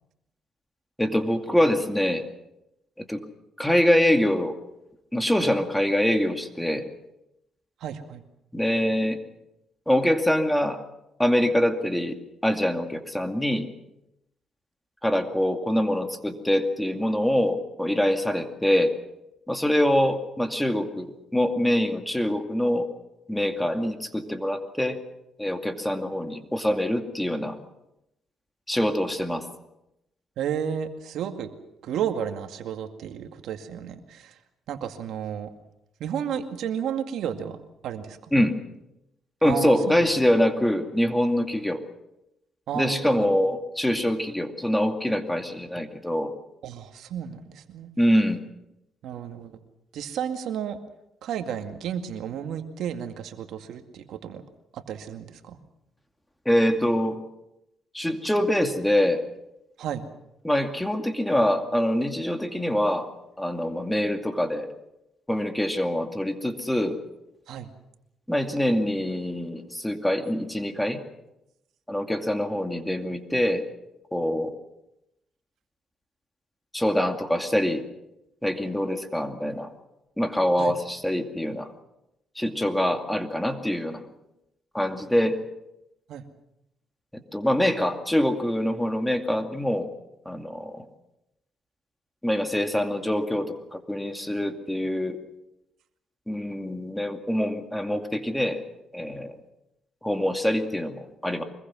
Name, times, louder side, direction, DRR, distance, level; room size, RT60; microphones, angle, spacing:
voice 1, 1.0-2.2 3.0-3.2 3.6-4.5 5.1-6.9 8.5-9.2 9.9-10.8 11.2-12.2 12.4-13.7 15.0-18.9 19.5-22.9 23.3-25.0 25.4-27.6 28.7-29.5 38.3-38.6 39.4-41.8 42.7-46.3 48.0-48.4 56.5-57.2 57.9-59.2 60.4-63.1 63.4-64.7 65.3-67.0 68.3-71.0 71.9-73.7 74.1-74.5 76.7-77.8 78.4-79.7 80.2-81.7 82.4-84.0 84.7-85.4 87.1-89.9 90.3-90.8 92.2-95.2 96.3-98.6 98.9-99.3 100.0-101.4, left 1 dB, 5° left, 6 dB, 2.3 m, -24 dB
voice 2, 7.8-8.2 30.4-31.5 31.8-34.4 34.7-35.5 36.0-37.6 37.8-38.3 39.4-40.0 42.7-43.3 46.6-47.9 49.0-49.6 49.9-50.8 51.2-54.4 54.7-55.6 59.8-60.1 67.5-67.7 80.6-80.8 86.1-86.2, right 8 dB, 80° right, 6 dB, 2.1 m, -32 dB
24.5 x 21.5 x 6.2 m, 0.88 s
cardioid pair, 90°, 0 cm